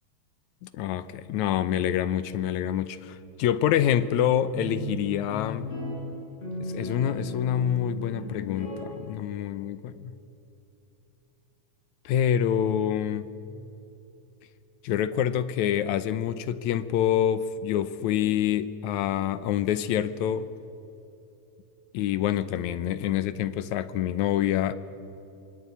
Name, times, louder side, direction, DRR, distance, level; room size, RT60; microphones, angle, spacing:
voice 1, 0.6-5.7 6.6-10.1 12.1-13.3 14.8-20.5 21.9-24.8, left 10 dB, 75° left, 13 dB, 2.0 m, -26 dB
sound 1, 4.5-9.4, left 1 dB, 45° left, 8.3 m, -36 dB
27.0 x 20.5 x 8.4 m, 2.8 s
omnidirectional pair, 3.8 m